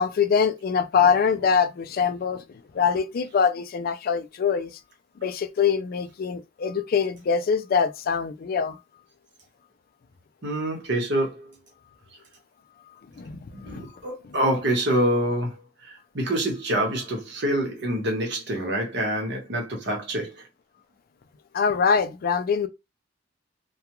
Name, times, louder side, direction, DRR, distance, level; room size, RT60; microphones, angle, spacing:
voice 1, 0.0-2.4 2.7-4.7 5.2-8.8 13.2-13.9 21.5-22.7, left 6 dB, 50° left, 0.3 m, -23 dB
voice 2, 10.4-11.5 13.5-20.4, right 1 dB, 60° right, 1.1 m, -26 dB
2.3 x 2.3 x 2.9 m
head